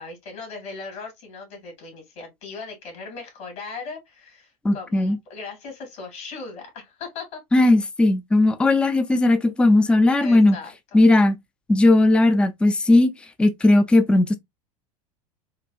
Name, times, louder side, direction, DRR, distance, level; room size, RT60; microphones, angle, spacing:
voice 1, 0.0-7.4 8.4-8.8 10.2-11.0, left 4 dB, 55° left, 1.8 m, -38 dB
voice 2, 4.6-5.2 7.5-10.6 10.9-11.4 11.7-13.1 13.4-14.3, left 2 dB, 5° left, 0.4 m, -17 dB
3.9 x 2.3 x 2.3 m
figure-of-eight pair, 80°, 20 cm